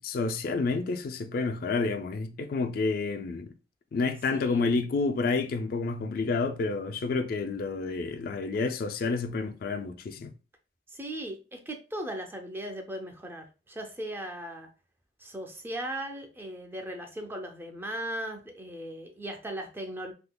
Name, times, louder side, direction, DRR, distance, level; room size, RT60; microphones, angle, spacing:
voice 1, 0.0-3.5 3.9-10.3, left 4 dB, 55° left, 0.3 m, -29 dB
voice 2, 4.3-4.7 10.9-14.7 15.2-20.1, right 1 dB, 15° right, 0.4 m, -38 dB
3.6 x 2.7 x 2.2 m
head